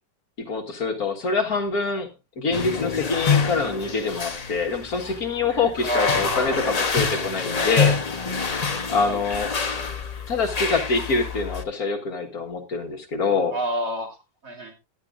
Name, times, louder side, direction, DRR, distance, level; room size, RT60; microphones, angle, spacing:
voice 1, 0.4-2.1 2.4-8.0 8.9-9.6 10.3-13.6, left 4 dB, 60° left, 3 dB, 2.0 m, -25 dB
sound 1, 2.5-11.6, left 5 dB, 30° left, 0.8 m, -26 dB
voice 2, 5.8-6.7 9.0-9.2 13.5-14.2 14.4-14.7, equal, 50° right, 2 dB, 3.1 m, -28 dB
16.5 x 10.5 x 2.5 m, 0.26 s
omnidirectional pair, 1.9 m